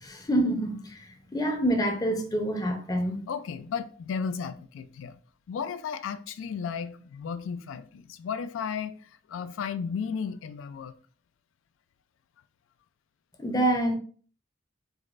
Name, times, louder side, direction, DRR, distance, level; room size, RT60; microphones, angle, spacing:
voice 1, 0.0-3.2 13.4-14.0, right 1 dB, 20° left, 0.6 m, -27 dB
voice 2, 3.3-5.2 5.5-10.9, left 6 dB, 85° left, 0.3 m, -34 dB
4.8 x 2.1 x 2.4 m
head